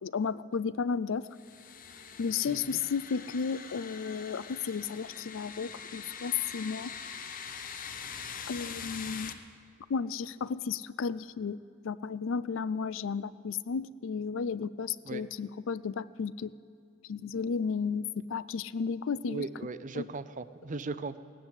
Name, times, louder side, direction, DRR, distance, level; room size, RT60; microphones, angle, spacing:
voice 1, 0.0-1.3 2.2-6.9 8.5-9.4 9.9-11.6 11.8-16.5 17.1-19.4 20.0-20.1, left 6 dB, 65° left, 18 dB, 0.4 m, -33 dB
sound 1, 1.3-9.3, left 6 dB, 40° left, 0.8 m, -43 dB
voice 2, 2.5-2.8 15.0-15.2 19.3-21.2, right 3 dB, 40° right, 14 dB, 0.5 m, -38 dB
17.0 x 10.0 x 8.2 m, 2.6 s
head